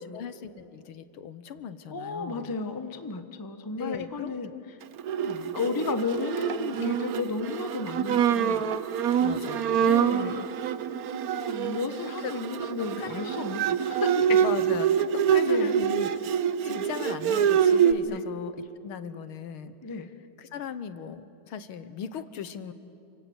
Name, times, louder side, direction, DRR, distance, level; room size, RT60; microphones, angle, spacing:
voice 1, 0.0-2.6 3.8-4.6 5.2-5.5 9.2-9.9 12.2-12.3 13.0-13.4 14.4-19.7 20.4-22.7, left 7 dB, 80° left, 12 dB, 1.9 m, -38 dB
voice 2, 1.9-4.5 5.5-8.8 9.8-10.5 11.1-14.4 15.3-15.7 16.7-16.9 18.0-18.2 19.8-20.1, left 4 dB, 15° left, 8 dB, 0.7 m, -33 dB
Bowed string instrument, 5.0-17.9, right 8 dB, 60° right, 1.0 m, -26 dB
29.0 x 25.5 x 8.0 m, 2.9 s
omnidirectional pair, 2.3 m